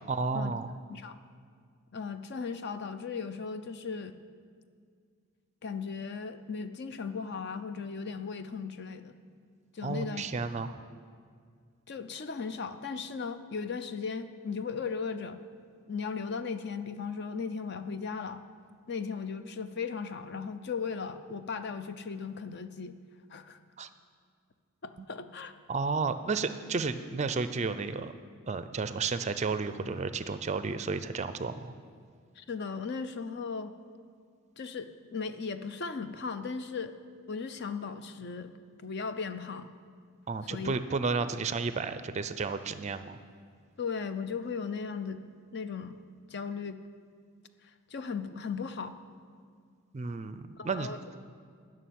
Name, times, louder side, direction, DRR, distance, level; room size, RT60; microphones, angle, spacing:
voice 1, 0.1-0.7 9.8-10.8 23.8-23.9 25.0-25.1 25.7-28.1 28.5-31.7 40.3-43.2 49.9-50.9, right 4 dB, 30° right, 11 dB, 0.4 m, -32 dB
voice 2, 0.9-1.2 1.9-4.2 5.6-9.1 9.7-10.3 11.9-15.4 15.9-18.4 18.9-22.9 23.3-23.6 24.8-25.5 32.4-33.7 34.6-36.9 37.3-38.5 38.8-39.7 40.5-40.8 43.8-45.9 46.3-46.8 47.9-49.0 50.6-51.0, left 5 dB, 50° left, 10 dB, 0.5 m, -37 dB
11.0 x 6.4 x 9.2 m, 2.1 s
head